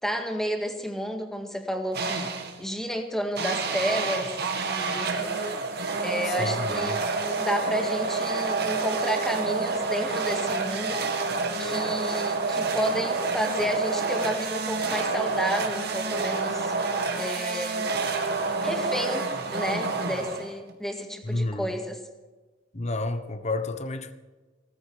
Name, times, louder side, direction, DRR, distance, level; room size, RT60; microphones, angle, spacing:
voice 1, 0.0-2.3 2.6-5.4 6.0-7.0 7.4-11.0 11.6-16.7 17.2-17.9 18.6-22.0, equal, ahead, 1.9 m, -31 dB
sound 1, 1.9-2.6 3.4-20.7, right 3 dB, 55° right, 2.0 m, -28 dB
voice 2, 6.4-6.9 21.2-21.7 22.7-24.1, left 2 dB, 35° left, 1.1 m, -30 dB
17.0 x 14.5 x 5.0 m
head